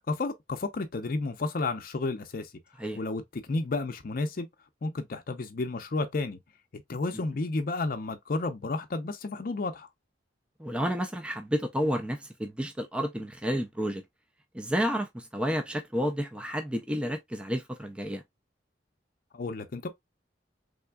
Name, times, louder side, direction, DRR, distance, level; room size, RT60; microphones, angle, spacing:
voice 1, 0.1-2.5 3.0-4.5 4.8-6.4 6.7-9.9 19.3-19.9, left 3 dB, 50° left, 0.5 m, -32 dB
voice 2, 10.6-14.0 14.5-18.2, equal, 5° right, 0.4 m, -31 dB
3.7 x 3.4 x 2.2 m
head